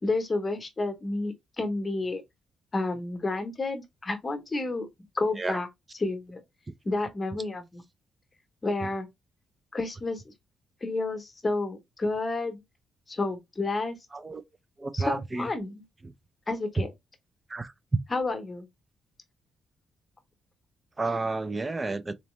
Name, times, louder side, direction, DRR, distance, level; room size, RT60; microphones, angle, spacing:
voice 1, 0.0-2.2 2.7-4.9 5.1-5.7 6.0-6.4 6.8-7.8 8.6-9.1 9.7-10.2 10.8-12.6 13.1-14.0 14.9-15.8 16.5-16.9 18.1-18.7, left 2 dB, 25° left, 0.9 m, -30 dB
voice 2, 14.1-14.4 14.8-15.5 16.0-16.1 17.5-18.0 21.0-22.1, right 3 dB, 20° right, 0.4 m, -31 dB
3.9 x 2.9 x 3.0 m
cardioid pair, 140°, 0 cm